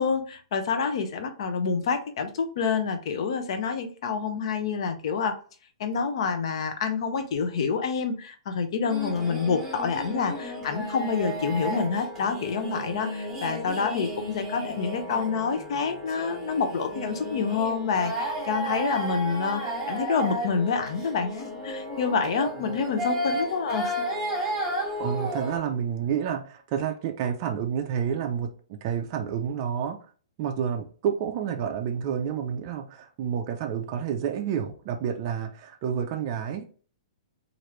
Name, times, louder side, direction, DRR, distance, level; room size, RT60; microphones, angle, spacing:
voice 1, 0.0-5.4 5.8-23.9, left 5 dB, 50° left, 8 dB, 0.6 m, -27 dB
sound 1, 8.9-25.6, equal, 5° right, 1.4 m, -33 dB
voice 2, 25.0-28.5 28.8-30.0 30.4-36.7, right 8 dB, 30° right, 4 dB, 0.4 m, -29 dB
3.0 x 2.5 x 3.1 m, 0.41 s
hypercardioid pair, 165°, 4 cm